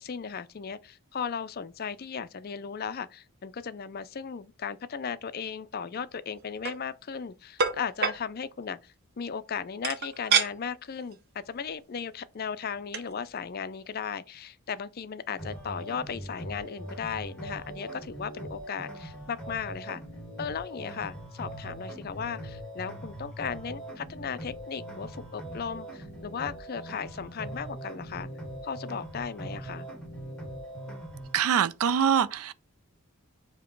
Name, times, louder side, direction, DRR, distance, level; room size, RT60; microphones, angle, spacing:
voice 1, 0.0-20.0 20.4-28.3 28.6-29.9, left 6 dB, 45° left, 0.4 m, -36 dB
sound 1, 6.4-6.8 7.6-8.2 9.8-10.5 11.0-11.1 11.5-11.7 12.7-12.8 12.9-13.1, right 6 dB, 45° right, 0.7 m, -26 dB
sound 2, 15.4-31.4, right 1 dB, 5° left, 1.9 m, -41 dB
voice 2, 31.3-32.5, right 8 dB, 75° right, 0.4 m, -24 dB
7.1 x 2.9 x 4.5 m
head